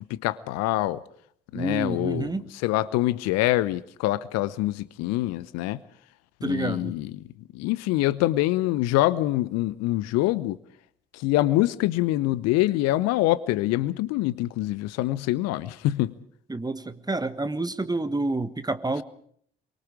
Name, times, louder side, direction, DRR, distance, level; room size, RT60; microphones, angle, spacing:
voice 1, 0.1-1.0 1.5-2.3 2.6-5.8 6.4-7.3 7.5-10.6 11.1-16.1, left 16 dB, 60° left, 18 dB, 0.8 m, -25 dB
voice 2, 1.5-2.5 6.4-6.9 16.5-19.0, right 2 dB, 15° right, 12 dB, 1.4 m, -28 dB
25.0 x 23.5 x 4.9 m, 0.63 s
figure-of-eight pair, 45°, 29 cm